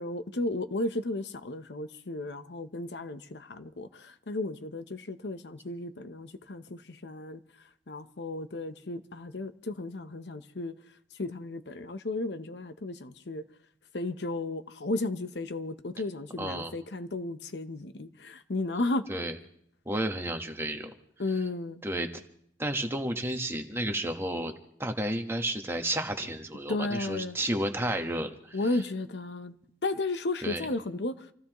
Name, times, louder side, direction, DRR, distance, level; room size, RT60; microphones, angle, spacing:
voice 1, 0.0-7.4 7.9-10.7 11.2-13.4 13.9-19.1 21.2-21.8 26.7-27.4 28.5-29.6 29.8-31.3, left 2 dB, 70° left, 0.8 m, -34 dB
voice 2, 16.4-16.7 19.1-19.3 19.8-20.9 21.8-22.1 22.6-24.5 24.8-28.6 30.4-30.7, right 1 dB, 15° right, 1.2 m, -31 dB
27.5 x 15.5 x 3.0 m
head